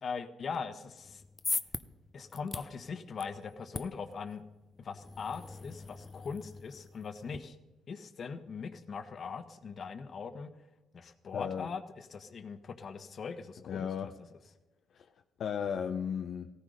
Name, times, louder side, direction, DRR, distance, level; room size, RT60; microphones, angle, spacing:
voice 1, 0.0-1.2 2.1-4.4 4.8-7.5 7.9-10.5 10.9-13.9, left 5 dB, 50° left, 10 dB, 1.3 m, -41 dB
sound 1, 1.0-7.4, left 3 dB, 25° left, 0.7 m, -42 dB
voice 2, 11.3-11.7 13.7-14.1 14.9-15.1 15.4-16.5, left 7 dB, 65° left, 6 dB, 0.8 m, -35 dB
16.5 x 14.5 x 5.1 m, 1.0 s
cardioid pair, 90°, 0 cm